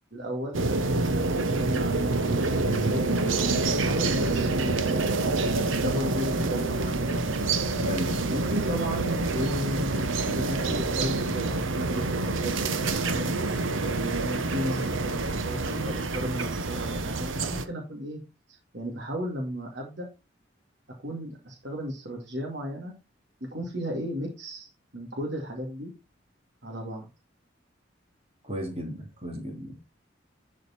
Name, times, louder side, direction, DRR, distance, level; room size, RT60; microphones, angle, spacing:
voice 1, 0.1-0.6 1.6-2.4 2.8-3.3 3.7-5.0 5.6-7.2 8.3-12.8 13.0-13.3 13.8-18.2 18.5-20.1 21.0-22.9 23.4-25.9 26.6-27.1, equal, 60° right, 2.4 m, -34 dB
sound 1, 0.5-17.7, right 3 dB, 80° right, 1.1 m, -27 dB
voice 2, 7.8-8.3 28.4-29.7, equal, 30° right, 2.9 m, -35 dB
11.5 x 5.1 x 4.4 m
head